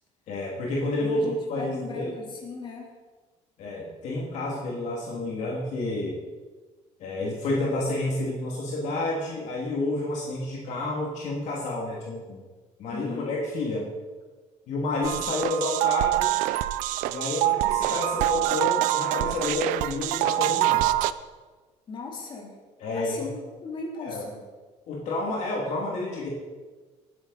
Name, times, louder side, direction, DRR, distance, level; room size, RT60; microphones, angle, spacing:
voice 1, 0.3-2.1 3.6-6.2 7.0-12.4 12.8-13.8 14.7-16.3 17.0-20.9 22.8-23.3 24.0-24.2 24.9-26.3, left 2 dB, 65° left, -3 dB, 2.8 m, -30 dB
voice 2, 1.1-2.9 12.9-13.3 21.9-22.6 22.9-24.4, left 3 dB, 40° left, -2 dB, 3.7 m, -38 dB
sound 1, 15.0-21.1, right 16 dB, 90° right, 0.5 m, -25 dB
19.5 x 10.0 x 4.3 m, 1.4 s
cardioid pair, 130°, 13 cm